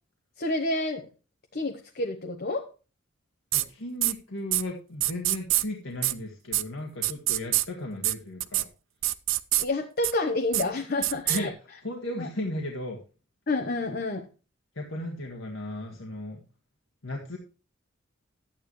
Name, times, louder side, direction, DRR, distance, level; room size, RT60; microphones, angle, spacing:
voice 1, 0.4-1.1 1.5-2.7 9.6-11.5 12.2-12.3 13.5-14.3, left 2 dB, 50° left, 4 dB, 1.0 m, -29 dB
voice 2, 3.5-8.7 11.3-11.5 11.8-13.0 14.8-16.4 17.0-17.4, left 1 dB, 80° left, 1 dB, 1.8 m, -35 dB
sound 1, 3.5-3.6 4.0-4.1 4.5-4.6 5.0-5.6 6.0-6.1 6.5-6.6 7.0-7.6 8.0-8.1 8.4-8.6 9.0-9.6 10.0-10.1 10.5-10.6 11.0-11.4, right 16 dB, 75° right, 0.6 m, -25 dB
11.5 x 9.1 x 3.1 m, 0.33 s
head